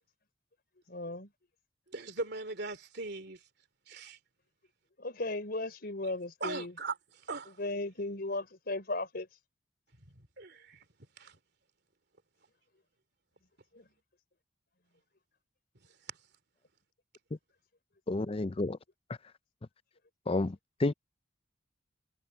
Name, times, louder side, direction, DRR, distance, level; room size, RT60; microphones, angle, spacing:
voice 1, 0.9-1.3 5.0-6.7 7.6-9.3 13.7-13.9, left 2 dB, 55° left, 4.3 m, -36 dB
voice 2, 1.9-3.4 3.9-4.2 6.4-6.9 7.3-7.5 10.4-10.8 11.2-11.4, right 3 dB, 60° right, 2.9 m, -39 dB
voice 3, 18.1-18.8 20.3-20.5 20.8-20.9, left 2 dB, 30° left, 0.5 m, -29 dB
head